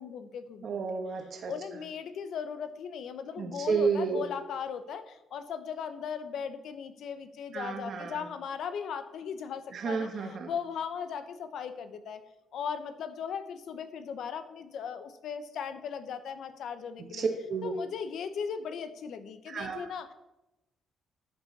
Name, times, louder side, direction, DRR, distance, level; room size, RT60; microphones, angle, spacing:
voice 1, 0.0-0.8 1.5-12.2 12.5-17.3 17.6-20.1, left 7 dB, 70° left, 11 dB, 0.8 m, -38 dB
voice 2, 0.6-1.5 3.4-4.2 7.5-8.2 9.7-10.5 17.1-17.7 19.5-19.9, right 5 dB, 55° right, 3 dB, 1.3 m, -31 dB
11.0 x 7.2 x 4.1 m, 0.95 s
cardioid pair, 90°, 0 cm